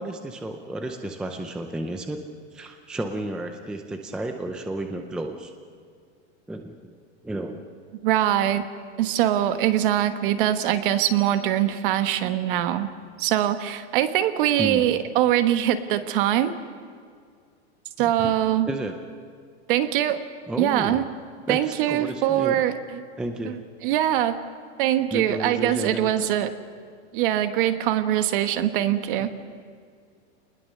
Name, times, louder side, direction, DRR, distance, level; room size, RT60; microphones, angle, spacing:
voice 1, 0.0-2.2 2.5-5.5 6.5-6.9 7.2-7.7 14.6-14.8 18.0-18.4 18.7-19.0 20.5-21.0 21.5-22.6 23.2-23.6 25.1-26.1 29.2-29.3, right 1 dB, ahead, 5 dB, 0.5 m, -32 dB
voice 2, 8.0-8.6 9.0-12.9 13.2-16.6 18.0-18.7 19.7-20.2 20.6-21.0 21.5-23.1 23.4-24.4 24.8-26.5 27.1-29.3, right 12 dB, 50° right, 10 dB, 1.4 m, -23 dB
26.5 x 20.0 x 6.7 m, 2.2 s
supercardioid pair, 165°, 34 cm